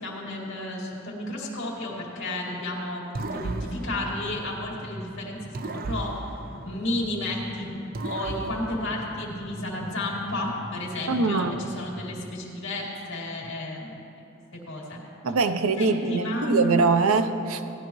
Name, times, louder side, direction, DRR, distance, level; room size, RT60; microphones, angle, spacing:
voice 1, 0.0-6.2 6.6-7.7 8.0-14.0 14.5-15.0 15.8-17.0, left 1 dB, 65° left, -3 dB, 2.2 m, -32 dB
sound 1, 3.1-5.0 5.5-7.4 7.9-9.7, right 2 dB, 45° right, 0.5 m, -36 dB
sound 2, 3.8-12.3, equal, 15° left, 0.9 m, -42 dB
voice 2, 11.1-11.5 15.2-17.7, right 4 dB, 90° right, 9 dB, 0.6 m, -23 dB
17.0 x 11.0 x 3.1 m, 2.7 s
head